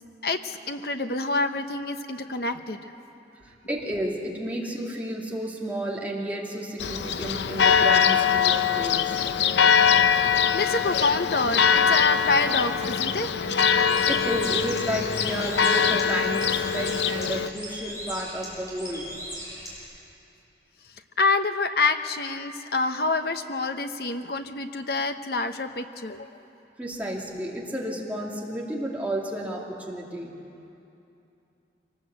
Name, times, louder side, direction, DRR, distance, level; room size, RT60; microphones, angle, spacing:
voice 1, 0.2-2.8 10.5-13.3 21.2-26.3, left 3 dB, 60° left, 7 dB, 1.0 m, -27 dB
voice 2, 3.4-9.1 13.8-19.1 26.8-30.3, right 1 dB, 10° right, -3 dB, 2.4 m, -32 dB
Church bell, 6.8-17.5, left 7 dB, 75° left, 0.6 m, -22 dB
Bird, 13.7-19.8, equal, 20° left, 6.0 m, -39 dB
24.5 x 19.0 x 8.1 m, 2.8 s
head